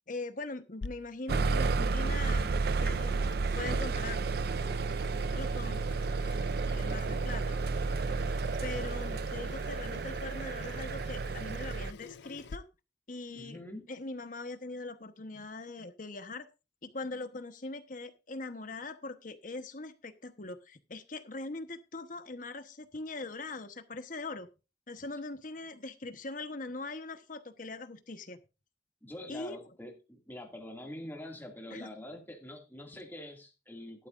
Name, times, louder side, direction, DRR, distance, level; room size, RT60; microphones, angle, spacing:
voice 1, 0.1-2.5 2.8-4.2 5.3-5.8 6.6-7.6 8.3-12.6 13.1-13.6 13.9-16.5 16.9-24.5 24.9-28.4 29.3-29.6 31.7-31.9, left 3 dB, 45° left, 1.1 m, -41 dB
Water tap faucet / Sink (filling or washing), 0.8-12.6, left 4 dB, 70° left, 0.5 m, -50 dB
sound 1, 1.3-11.9, right 4 dB, 55° right, 0.4 m, -31 dB
voice 2, 13.4-13.9 29.0-34.1, left 1 dB, 10° left, 2.3 m, -45 dB
12.5 x 12.0 x 2.5 m
head